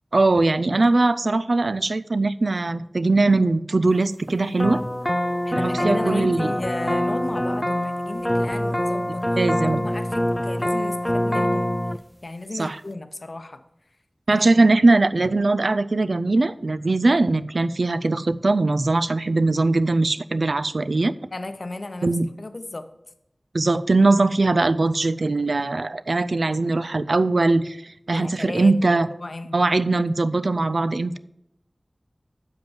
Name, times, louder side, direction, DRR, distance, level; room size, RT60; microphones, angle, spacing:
voice 1, 0.1-4.8 5.5-6.5 9.4-9.8 12.5-12.8 14.3-21.2 22.0-22.3 23.5-29.1 29.5-31.2, right 2 dB, 75° right, 14 dB, 0.3 m, -20 dB
sound 1, 4.6-12.0, left 1 dB, 15° left, 0.4 m, -24 dB
voice 2, 5.4-9.3 9.6-11.8 12.2-13.6 14.3-14.7 21.3-22.9 28.1-30.0, left 2 dB, 65° left, 10 dB, 0.6 m, -34 dB
7.3 x 5.3 x 7.1 m, 0.82 s
wide cardioid pair, 60°, 0 cm